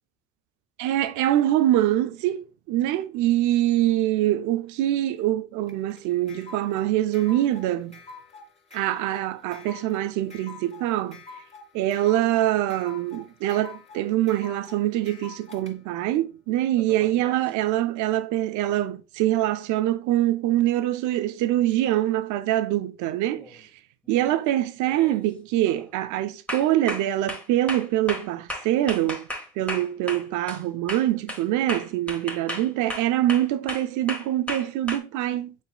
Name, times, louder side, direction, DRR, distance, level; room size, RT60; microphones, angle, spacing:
voice 1, 0.8-8.0 8.7-11.2 11.7-23.7 24.1-29.3 29.6-35.5, right 13 dB, 80° right, 0.5 m, -24 dB
sound 1, 5.7-15.7, left 4 dB, 20° left, 2.1 m, -45 dB
sound 2, 16.8-17.5 21.7-21.8 23.3-23.6 24.1-24.4 24.9-25.2 25.6-25.9 26.5-30.6 30.9-35.0, left 1 dB, 5° left, 1.4 m, -35 dB
5.9 x 3.9 x 2.2 m
supercardioid pair, 70°, 29 cm